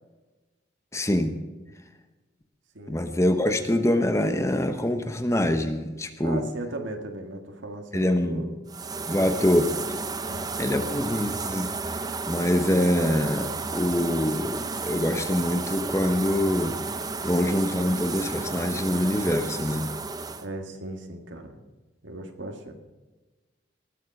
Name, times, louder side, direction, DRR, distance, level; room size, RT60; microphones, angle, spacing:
voice 1, 0.9-1.4 2.9-6.4 7.9-8.5 9.1-9.7 10.6-11.7 12.3-16.7 17.2-19.9, left 1 dB, 15° left, 7 dB, 0.9 m, -24 dB
voice 2, 2.7-3.1 6.2-8.5 10.3-11.1 20.4-21.6 22.0-22.7, right 2 dB, 85° right, 5 dB, 1.8 m, -37 dB
sound 1, 8.7-20.5, right 4 dB, 20° right, 0.6 m, -32 dB
19.0 x 7.3 x 5.4 m, 1.2 s
head